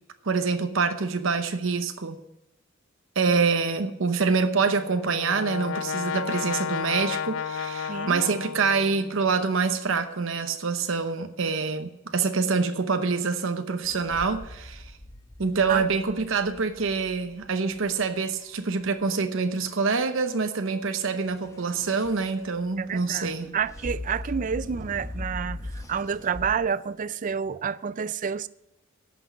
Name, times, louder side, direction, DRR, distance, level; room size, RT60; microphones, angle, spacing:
voice 1, 0.2-2.2 3.2-14.9 15.4-23.6, right 4 dB, 65° right, 0.8 m, -26 dB
Brass instrument, 4.6-9.4, left 7 dB, 65° left, 0.4 m, -32 dB
voice 2, 7.9-8.2 15.7-15.8 22.8-28.5, right 7 dB, 40° right, 0.3 m, -29 dB
sound 1, 13.8-17.9 21.2-26.6, left 1 dB, 15° left, 0.8 m, -40 dB
11.0 x 6.1 x 8.1 m
head